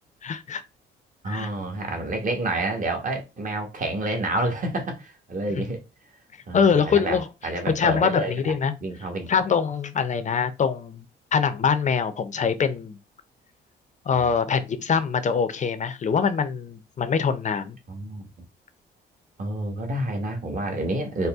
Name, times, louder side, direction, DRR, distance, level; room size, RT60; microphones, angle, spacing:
voice 1, 0.2-0.6 1.3-1.5 5.6-5.7 6.5-7.3 7.7-8.7 9.3-11.0 11.3-13.0 14.1-17.8, left 6 dB, 40° left, 0.6 m, -23 dB
voice 2, 1.2-5.8 6.5-7.2 7.4-8.5 8.8-9.4 14.1-14.3 17.9-18.3 19.4-21.3, right 2 dB, 40° right, 1.3 m, -29 dB
4.1 x 2.2 x 3.5 m
cardioid pair, 90°, 20 cm